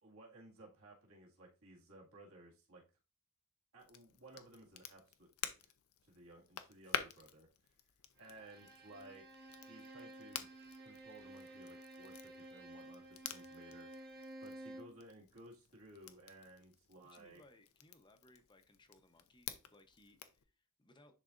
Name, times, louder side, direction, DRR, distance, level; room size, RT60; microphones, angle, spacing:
voice 1, 0.0-2.8 3.7-5.7 6.0-7.5 8.2-9.3 9.7-10.5 10.8-14.0 14.4-17.4, right 1 dB, 65° right, -2 dB, 2.0 m, -58 dB
Crackle, 3.8-20.4, left 9 dB, 70° left, 0.6 m, -50 dB
Bowed string instrument, 8.2-15.0, right 1 dB, 50° right, 1.4 m, -53 dB
voice 2, 17.1-21.1, left 1 dB, 20° left, 7 dB, 0.8 m, -65 dB
10.5 x 4.0 x 2.5 m, 0.31 s
head